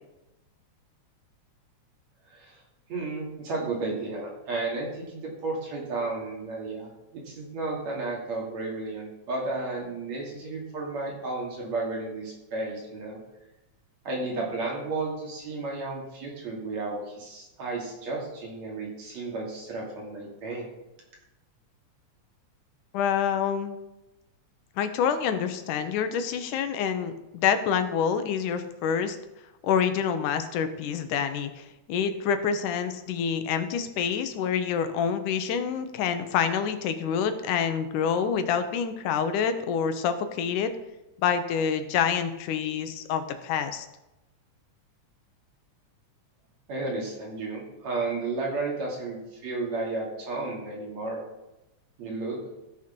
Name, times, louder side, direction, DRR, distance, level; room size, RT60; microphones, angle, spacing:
voice 1, 2.9-13.2 14.1-20.7 46.7-51.2 52.0-52.4, right 3 dB, 60° right, -2 dB, 3.9 m, -33 dB
voice 2, 22.9-23.8 24.8-29.2 29.6-40.7 41.2-43.9, left 7 dB, 85° left, 9 dB, 2.4 m, -27 dB
15.0 x 6.7 x 5.3 m, 0.97 s
omnidirectional pair, 3.5 m